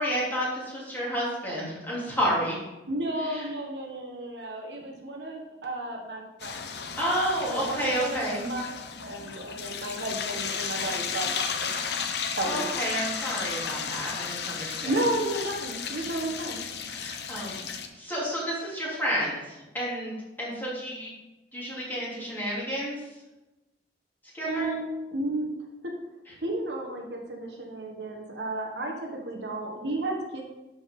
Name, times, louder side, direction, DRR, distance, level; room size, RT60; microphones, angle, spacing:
voice 1, 0.0-2.6 3.2-3.5 6.9-8.4 12.4-15.0 16.9-17.6 17.9-21.1 21.5-23.0 24.3-24.7, equal, 10° left, -7 dB, 2.8 m, -30 dB
voice 2, 2.9-6.7 7.5-12.1 12.4-12.8 14.8-16.6 24.4-25.6 26.4-30.4, right 1 dB, 70° right, 1 dB, 1.3 m, -33 dB
sound 1, 6.4-17.9, left 6 dB, 65° left, 0.8 m, -34 dB
12.0 x 5.1 x 3.7 m, 1.0 s
head